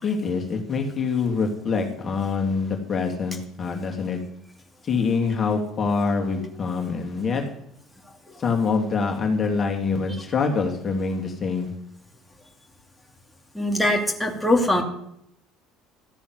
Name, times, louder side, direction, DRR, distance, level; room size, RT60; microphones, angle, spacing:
voice 1, 0.0-4.2 4.8-7.4 8.4-11.7, left 4 dB, 40° left, 2 dB, 2.6 m, -25 dB
voice 2, 13.5-14.8, left 1 dB, 5° left, 2 dB, 2.6 m, -21 dB
13.5 x 7.0 x 9.7 m, 0.74 s
hypercardioid pair, 70°, 0 cm